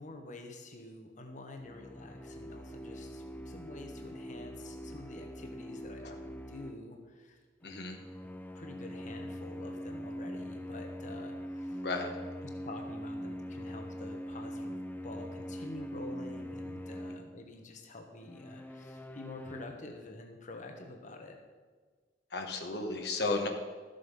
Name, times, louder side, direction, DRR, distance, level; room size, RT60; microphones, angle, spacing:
voice 1, 0.0-7.4 8.5-11.8 12.6-14.8 15.0-21.4, left 2 dB, 45° left, 3 dB, 1.1 m, -48 dB
sound 1, 1.6-6.9 7.6-17.5 18.2-19.6, equal, 10° left, 0.6 m, -43 dB
voice 2, 7.6-8.0 11.8-12.1 22.3-23.5, left 3 dB, 70° left, 4 dB, 1.2 m, -33 dB
13.0 x 7.7 x 5.4 m, 1.5 s
head